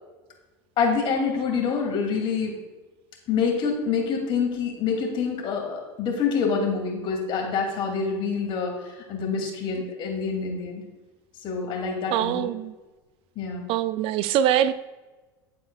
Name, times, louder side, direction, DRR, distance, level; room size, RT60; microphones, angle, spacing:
voice 1, 0.8-2.6 3.3-10.8 11.4-12.5 13.4-13.7, left 5 dB, 45° left, 1 dB, 2.6 m, -26 dB
voice 2, 12.1-12.7 13.7-14.7, right 11 dB, 50° right, 14 dB, 0.4 m, -23 dB
11.0 x 8.3 x 2.4 m, 1.2 s
hypercardioid pair, 100°, 12 cm